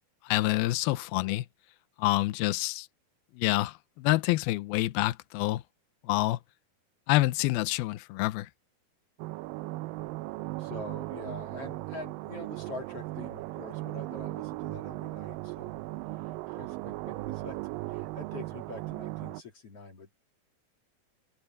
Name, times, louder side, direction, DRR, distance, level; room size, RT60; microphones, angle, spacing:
voice 1, 0.3-1.5 2.0-2.9 3.4-5.6 6.0-6.4 7.1-8.5, left 18 dB, 80° left, 2.6 m, -27 dB
sound 1, 9.2-19.4, right 19 dB, 80° right, 2.1 m, -37 dB
voice 2, 10.6-15.7 16.2-17.6 17.9-20.2, left 2 dB, 40° left, 3.4 m, -45 dB
open air
omnidirectional pair, 4.4 m